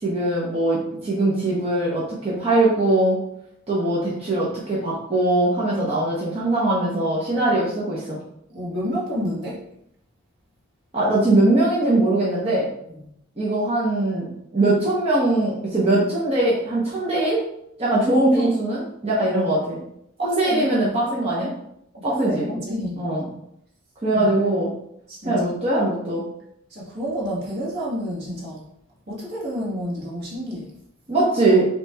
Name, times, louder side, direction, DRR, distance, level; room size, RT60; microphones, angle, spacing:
voice 1, 0.0-3.2 3.7-8.2 10.9-12.7 13.4-14.3 14.5-17.4 17.8-19.8 20.2-21.5 22.0-22.5 23.0-23.3 24.0-24.7 25.2-26.2 31.1-31.7, right 2 dB, 30° right, -6 dB, 0.8 m, -21 dB
voice 2, 8.5-9.6 18.3-18.6 20.2-20.7 21.9-23.0 24.1-24.4 25.1-25.5 26.7-28.7 29.1-30.7, equal, 55° right, -6 dB, 1.4 m, -29 dB
5.5 x 2.9 x 2.3 m, 0.74 s
head